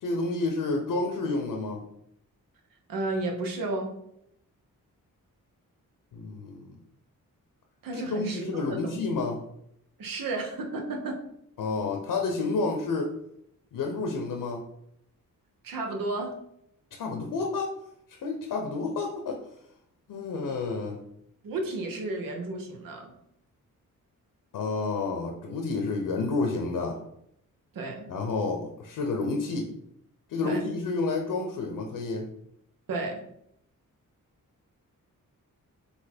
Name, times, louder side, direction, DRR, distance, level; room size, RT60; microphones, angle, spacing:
voice 1, 0.0-1.8 6.1-6.8 7.9-9.4 11.6-13.1 13.7-14.6 16.9-17.8 18.2-19.4 20.1-21.0 24.5-27.0 28.1-29.7 30.3-32.3, left 3 dB, 75° left, 3 dB, 0.7 m, -30 dB
voice 2, 2.9-3.9 7.8-9.0 10.0-11.2 15.6-16.4 21.4-23.1 27.7-28.1 30.4-30.6 32.9-33.2, right 2 dB, 85° right, 2 dB, 0.9 m, -32 dB
4.1 x 2.8 x 4.3 m, 0.75 s
cardioid pair, 100°, 33 cm